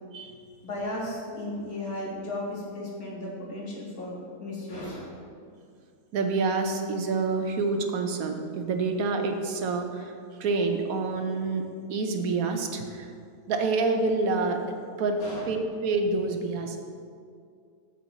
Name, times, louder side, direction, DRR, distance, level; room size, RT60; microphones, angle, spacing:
voice 1, 0.6-5.2 15.2-15.4, left 1 dB, 75° left, -4 dB, 2.2 m, -35 dB
voice 2, 6.1-10.1 10.4-13.1 13.5-14.7 15.0-15.2 15.5-16.8, right 3 dB, 75° right, 5 dB, 1.2 m, -27 dB
7.7 x 7.5 x 4.0 m, 2.3 s
omnidirectional pair, 1.5 m